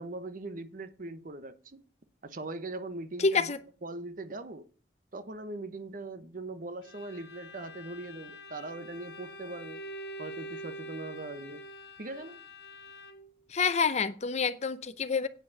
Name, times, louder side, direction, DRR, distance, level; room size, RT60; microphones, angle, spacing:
voice 1, 0.0-1.8 2.2-3.5 3.8-4.6 5.1-9.8 10.2-11.6 12.0-12.4, right 2 dB, 50° right, 0.9 m, -40 dB
voice 2, 3.2-3.6 13.5-15.3, left 5 dB, 40° left, 0.6 m, -27 dB
Bowed string instrument, 6.8-13.4, equal, 70° left, 1.4 m, -45 dB
9.0 x 5.3 x 7.0 m
head